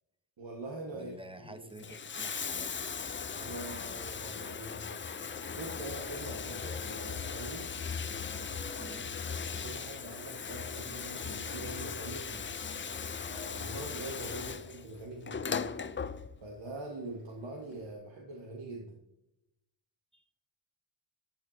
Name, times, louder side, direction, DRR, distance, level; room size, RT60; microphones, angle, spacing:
voice 1, 0.4-1.9 3.4-7.7 8.4-9.0 9.3-12.6 13.3-15.9 16.4-19.0, right 2 dB, 65° right, 1 dB, 1.8 m, -44 dB
voice 2, 0.9-2.9 8.8-9.1 20.1-20.2, right 1 dB, 10° right, 9 dB, 1.0 m, -50 dB
Bathtub (filling or washing), 1.6-16.6 17.7-17.8, left 6 dB, 25° left, 0.5 m, -38 dB
13.0 x 9.2 x 2.8 m, 0.87 s
cardioid pair, 85°, 48 cm